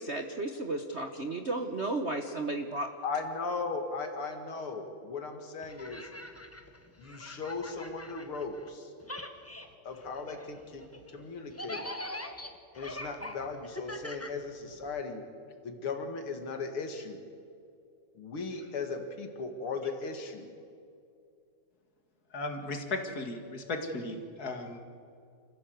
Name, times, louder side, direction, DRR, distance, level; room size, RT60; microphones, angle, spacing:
voice 1, 0.0-2.9, right 2 dB, 45° right, 5 dB, 0.9 m, -33 dB
voice 2, 3.0-6.1 7.0-8.9 9.8-11.9 12.7-15.2 15.6-17.2 18.2-20.5, left 4 dB, 80° left, 5 dB, 2.9 m, -37 dB
sound 1, 5.6-8.7 9.0-15.0, left 1 dB, 10° left, 0.7 m, -43 dB
voice 3, 22.3-24.8, left 2 dB, 45° left, 4 dB, 2.5 m, -36 dB
27.5 x 15.0 x 8.0 m, 2.4 s
omnidirectional pair, 2.4 m